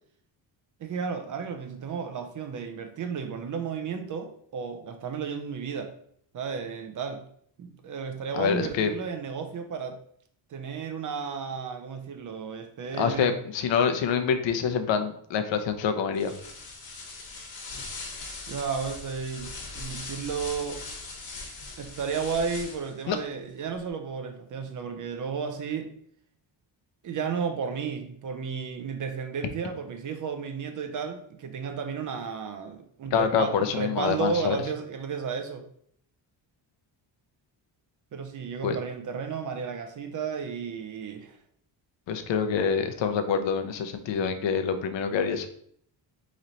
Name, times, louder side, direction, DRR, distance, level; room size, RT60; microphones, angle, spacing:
voice 1, 0.8-5.9 6.3-7.3 7.6-10.0 10.5-13.3 18.5-20.8 21.8-25.9 27.0-35.7 38.1-41.4, right 6 dB, 45° right, 0.5 m, -33 dB
voice 2, 8.3-8.9 13.0-16.3 23.1-23.2 33.1-34.6 38.6-38.8 42.1-45.5, left 6 dB, 75° left, 0.7 m, -26 dB
sound 1, 16.1-23.0, left 3 dB, 55° left, 1.2 m, -40 dB
4.3 x 3.1 x 3.9 m
cardioid pair, 165°, 45 cm